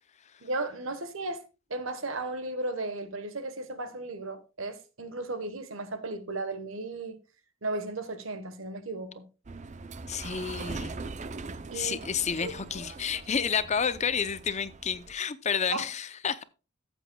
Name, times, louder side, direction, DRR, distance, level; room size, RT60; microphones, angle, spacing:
voice 1, 0.4-1.4 1.7-7.2 7.6-9.3 11.7-12.0 15.7-15.8, right 2 dB, 75° right, 1.3 m, -35 dB
sound 1, 9.4-15.1, right 3 dB, 35° right, 0.6 m, -41 dB
voice 2, 10.1-11.0 11.7-16.4, left 6 dB, 35° left, 0.6 m, -30 dB
14.0 x 8.1 x 2.3 m
head